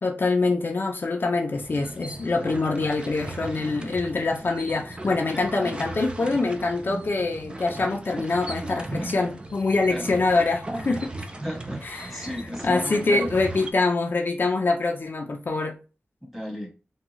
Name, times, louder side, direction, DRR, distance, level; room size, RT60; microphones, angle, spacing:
voice 1, 0.0-11.1 11.8-12.3 12.6-15.7, left 3 dB, 55° left, 0.5 m, -25 dB
sound 1, 1.5-13.7, right 2 dB, 25° right, 0.5 m, -37 dB
voice 2, 11.4-13.3 16.2-16.7, equal, 5° right, 1.5 m, -34 dB
3.5 x 2.3 x 3.0 m
wide cardioid pair, 90°, 4 cm